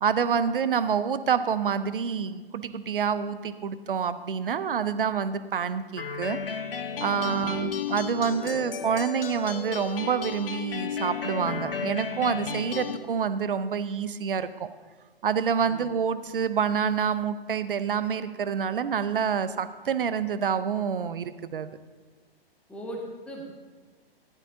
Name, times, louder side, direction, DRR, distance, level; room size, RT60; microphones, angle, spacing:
voice 1, 0.0-6.4 7.0-14.7 15.2-21.8, right 7 dB, 60° right, 13 dB, 0.7 m, -27 dB
sound 1, 6.0-13.0, left 6 dB, 65° left, 0.9 m, -33 dB
voice 2, 7.2-7.7 8.4-8.6 15.6-15.8 22.7-23.0 23.3-23.4, right 1 dB, 5° left, -2 dB, 1.5 m, -40 dB
14.5 x 11.5 x 2.7 m, 1.3 s
figure-of-eight pair, 120°, 30 cm